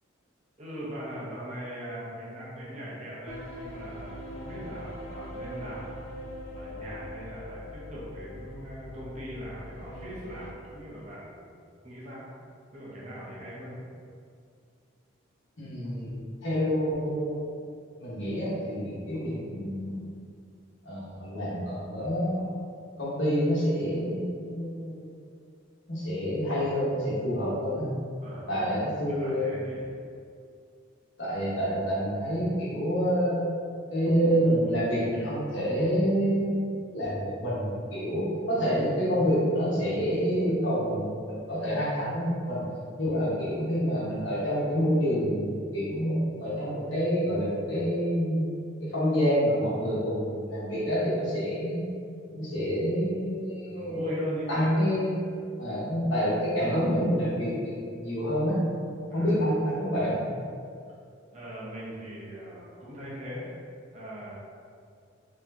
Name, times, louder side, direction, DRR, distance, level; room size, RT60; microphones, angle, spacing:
voice 1, 0.6-6.0 6.6-11.5 11.8-12.3 12.7-13.8 28.2-28.8 29.1-29.9 53.6-54.7 55.4-55.5 59.1-59.4 61.3-63.4 63.9-64.3, equal, 35° right, -7 dB, 0.9 m, -40 dB
sound 1, 3.3-10.5, left 1 dB, 85° left, 0.5 m, -42 dB
voice 2, 15.6-17.6 18.0-20.1 20.8-22.5 23.0-25.2 25.9-27.9 28.5-29.5 31.2-33.4 33.9-42.6 43.0-48.5 48.8-51.8 52.3-54.2 54.5-55.2 55.6-58.6 59.1-60.2, equal, 65° left, -9 dB, 1.4 m, -27 dB
4.7 x 3.1 x 2.8 m, 2.3 s
head